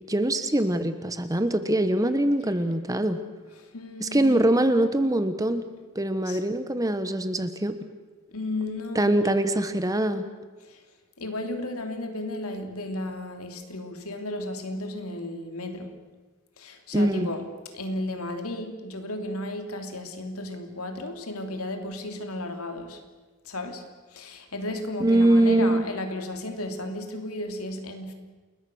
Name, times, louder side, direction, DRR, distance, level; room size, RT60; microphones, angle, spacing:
voice 1, 0.1-3.2 4.0-5.7 5.9-7.7 8.9-10.3 16.9-17.3 25.0-25.9, right 1 dB, 15° right, 10 dB, 1.2 m, -23 dB
voice 2, 3.6-4.7 6.2-6.4 8.3-9.4 10.6-10.8 11.2-15.9 16.6-17.4 17.7-23.0 23.4-23.8 24.1-28.1, left 1 dB, 85° left, 5 dB, 3.2 m, -34 dB
29.0 x 21.5 x 6.4 m, 1.3 s
head